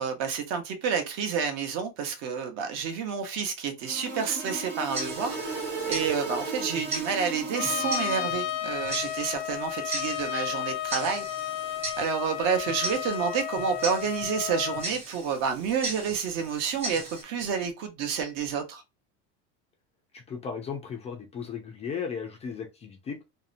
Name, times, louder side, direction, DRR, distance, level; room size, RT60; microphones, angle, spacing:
voice 1, 0.0-11.3 12.0-18.8, right 6 dB, 55° right, 0.8 m, -29 dB
sound 1, 3.8-8.6, right 4 dB, 80° right, 1.3 m, -35 dB
Tick-tock, 4.9-17.2, right 2 dB, 20° right, 0.9 m, -39 dB
Trumpet, 7.5-14.9, left 12 dB, 90° left, 0.7 m, -33 dB
voice 2, 20.1-23.2, left 6 dB, 20° left, 0.3 m, -36 dB
2.7 x 2.1 x 2.4 m
cardioid pair, 145°, 31 cm